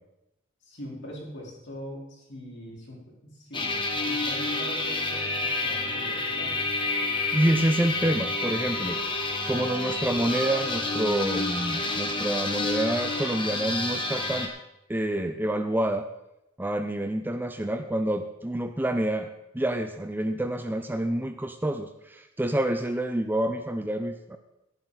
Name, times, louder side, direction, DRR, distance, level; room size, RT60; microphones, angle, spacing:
voice 1, 0.6-6.6, equal, 60° left, -2 dB, 4.0 m, -42 dB
sound 1, 3.5-14.5, left 2 dB, 25° left, 1.5 m, -29 dB
voice 2, 7.0-9.0 9.5-14.5 14.9-16.1 16.6-19.3 19.5-24.4, right 1 dB, 10° right, 8 dB, 0.5 m, -28 dB
14.5 x 10.5 x 4.0 m, 0.87 s
head